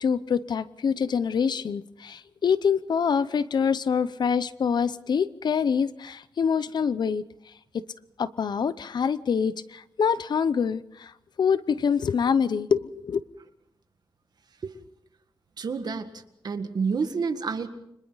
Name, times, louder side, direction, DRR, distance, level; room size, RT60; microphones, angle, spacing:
voice 1, 0.0-7.2 7.7-7.8 8.2-13.2, left 6 dB, 60° left, 15 dB, 0.8 m, -25 dB
voice 2, 15.6-17.7, right 5 dB, 55° right, 8 dB, 1.8 m, -29 dB
29.5 x 25.5 x 4.1 m, 0.76 s
wide cardioid pair, 130°, 8 cm